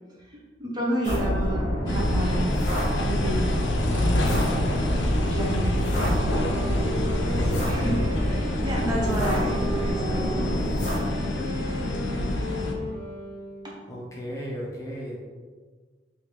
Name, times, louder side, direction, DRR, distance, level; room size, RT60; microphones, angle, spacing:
voice 1, 0.3-2.7 3.0-3.5 3.9-4.3 5.3-10.4 13.6-13.7, right 1 dB, 25° right, -4 dB, 0.5 m, -32 dB
sound 1, 1.0-11.0, equal, 45° left, 1.0 m, -28 dB
sound 2, 1.9-12.7, left 1 dB, 85° left, 0.5 m, -27 dB
Wind instrument woodwind instrument, 6.3-13.9, equal, 65° right, 0.9 m, -36 dB
voice 2, 13.9-15.2, equal, 15° left, -5 dB, 0.6 m, -35 dB
3.3 x 2.5 x 3.0 m, 1.5 s
head